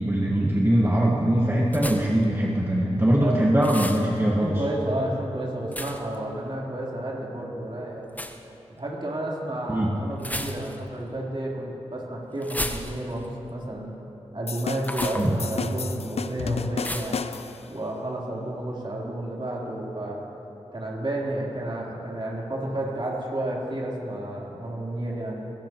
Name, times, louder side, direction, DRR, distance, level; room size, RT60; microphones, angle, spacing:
voice 1, 0.0-4.5 9.7-9.9 15.2-15.4, right 1 dB, 20° right, -3 dB, 1.5 m, -22 dB
sound 1, 1.7-2.2 3.6-4.1 5.7-6.2 8.1-8.4 10.2-10.9 12.4-13.3 14.8-15.3 16.8-17.2, left 1 dB, 15° left, 1.2 m, -33 dB
voice 2, 3.2-3.5 4.4-8.1 8.8-14.0 14.3-17.2 17.7-20.2 20.7-25.5, right 1 dB, 45° right, -4 dB, 3.6 m, -31 dB
sound 2, 14.5-17.7, left 5 dB, 65° left, 0.6 m, -32 dB
21.0 x 16.0 x 3.0 m, 3.0 s
cardioid pair, 40°, 12 cm